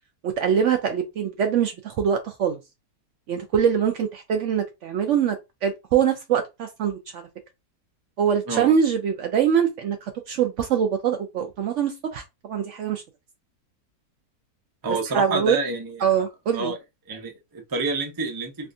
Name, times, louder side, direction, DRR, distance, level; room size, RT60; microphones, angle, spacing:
voice 1, 0.2-2.6 3.3-5.4 5.6-7.2 8.2-13.0 15.1-15.6 16.0-16.7, right 8 dB, 65° right, 0.8 m, -23 dB
voice 2, 14.8-16.1 16.5-16.8 17.1-18.7, right 3 dB, 25° right, 0.4 m, -28 dB
3.5 x 2.4 x 2.6 m
omnidirectional pair, 1.6 m